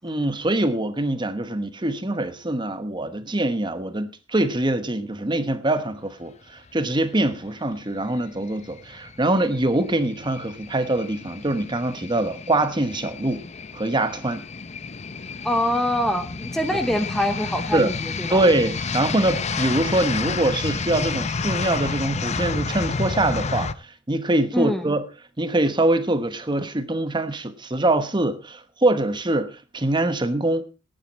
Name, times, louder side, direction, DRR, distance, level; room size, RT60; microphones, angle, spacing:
voice 1, 0.0-13.4 13.7-14.4 17.7-17.9 18.3-25.0 25.4-30.6, right 1 dB, 25° right, 1.1 m, -24 dB
sound 1, 8.0-23.7, left 4 dB, 35° left, 0.6 m, -30 dB
voice 2, 15.4-18.4 24.5-24.9, equal, ahead, 0.9 m, -24 dB
18.0 x 9.2 x 4.2 m
head